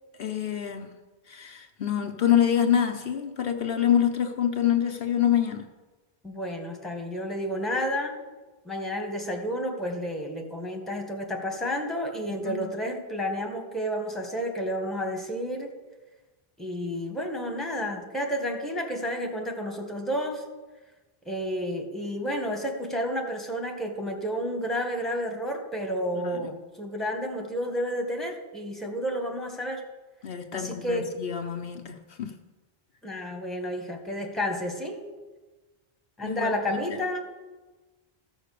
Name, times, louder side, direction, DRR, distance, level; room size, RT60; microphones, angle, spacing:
voice 1, 0.2-0.9 1.3-5.6 12.3-12.7 26.1-26.5 30.2-32.3 36.2-37.0, left 9 dB, 65° left, 5 dB, 1.0 m, -26 dB
voice 2, 6.2-8.2 8.6-15.7 16.6-20.4 21.2-29.8 30.5-31.1 33.0-35.0 36.2-37.2, equal, ahead, 2 dB, 1.6 m, -31 dB
14.0 x 6.5 x 6.7 m, 1.2 s
omnidirectional pair, 1.1 m